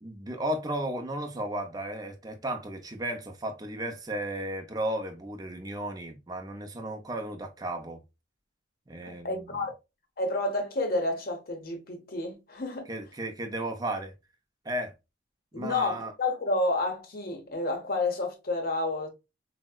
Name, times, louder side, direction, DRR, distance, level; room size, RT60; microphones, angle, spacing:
voice 1, 0.0-8.0 8.9-9.6 12.9-14.1 14.6-14.9 15.5-16.1, right 1 dB, 20° right, 0.5 m, -34 dB
voice 2, 9.0-9.7 10.2-12.9 15.5-19.1, left 2 dB, 50° left, 0.8 m, -30 dB
4.5 x 2.1 x 2.2 m
head